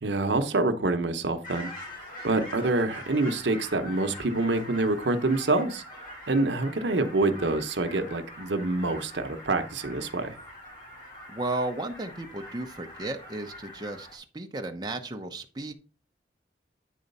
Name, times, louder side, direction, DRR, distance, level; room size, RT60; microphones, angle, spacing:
voice 1, 0.0-1.7 2.2-10.4, right 2 dB, 80° right, 0.8 m, -26 dB
sound 1, 1.4-14.2, left 1 dB, 50° left, 2.5 m, -44 dB
voice 2, 11.3-15.7, right 2 dB, 25° right, 0.8 m, -34 dB
9.3 x 3.9 x 5.4 m
head